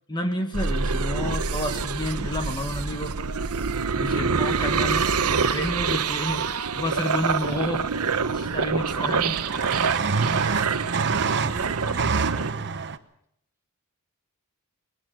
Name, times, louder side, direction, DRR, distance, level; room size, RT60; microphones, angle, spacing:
voice 1, 0.1-3.1 4.0-6.4 6.7-7.9 8.3-9.4, left 1 dB, 20° left, 6 dB, 1.5 m, -30 dB
sound 1, 0.5-12.5, right 5 dB, 90° right, 1.0 m, -26 dB
sound 2, 2.5-2.6 4.1-4.8 7.1-7.2 7.4-7.9 8.2-13.0, right 5 dB, 55° right, 0.9 m, -28 dB
voice 2, 11.2-12.7, right 1 dB, 15° right, 4 dB, 2.0 m, -44 dB
21.0 x 17.5 x 7.8 m, 0.73 s
head